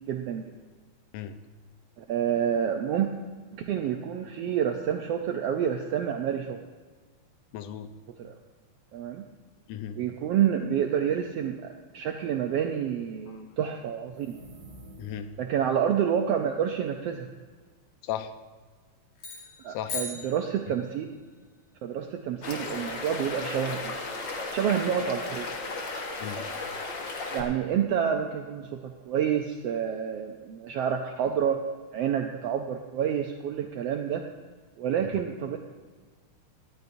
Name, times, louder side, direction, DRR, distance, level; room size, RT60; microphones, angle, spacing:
voice 1, 0.1-0.5 2.0-3.1 3.5-6.6 8.2-8.4 8.9-9.2 9.9-14.4 15.4-17.3 19.6-21.1 21.8-23.9 24.5-25.6 27.3-31.6 31.9-34.2 34.8-35.6, right 8 dB, 80° right, 4 dB, 1.4 m, -28 dB
voice 2, 7.5-7.9 9.7-10.0 13.3-13.4 15.0-15.3 18.0-18.3 19.7-19.9 26.2-26.5, left 10 dB, 90° left, 10 dB, 2.2 m, -36 dB
Ethereal Woosh, 14.0-15.5, right 1 dB, 45° right, 1.7 m, -49 dB
sound 1, 19.2-21.1, left 4 dB, 70° left, 3.8 m, -38 dB
sound 2, 22.4-27.4, left 3 dB, 50° left, 1.6 m, -35 dB
17.5 x 12.5 x 2.6 m, 1.4 s
omnidirectional pair, 3.5 m